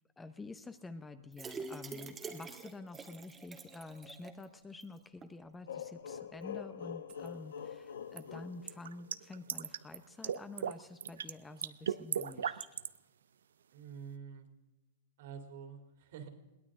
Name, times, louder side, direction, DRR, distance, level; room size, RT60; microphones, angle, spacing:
voice 1, 0.2-12.7, left 3 dB, 10° left, 10 dB, 0.8 m, -49 dB
sound 1, 1.3-4.4 4.8-4.9 5.2-5.3, right 4 dB, 15° right, 1.3 m, -46 dB
sound 2, 5.7-9.4, left 8 dB, 85° left, 1.0 m, -45 dB
sound 3, 7.1-7.3 8.2-10.0 10.2-10.7 11.0-11.3 11.6-13.0, right 8 dB, 90° right, 0.6 m, -36 dB
voice 2, 13.7-14.5 15.2-16.3, right 7 dB, 60° right, 5 dB, 2.9 m, -47 dB
21.5 x 17.5 x 3.7 m, 1.1 s
hypercardioid pair, 150°, 0 cm